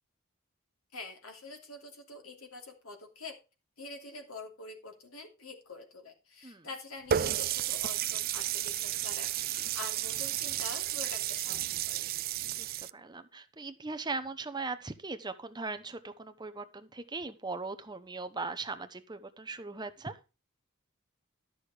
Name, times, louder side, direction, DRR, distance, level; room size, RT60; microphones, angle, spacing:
voice 1, 0.9-3.4 3.8-12.1, left 3 dB, 80° left, 4 dB, 2.9 m, -46 dB
Water tap faucet, 7.1-12.9, right 11 dB, 45° right, 0.4 m, -32 dB
voice 2, 12.6-20.2, right 3 dB, 20° right, 10 dB, 0.8 m, -39 dB
12.0 x 6.4 x 4.9 m, 0.30 s
head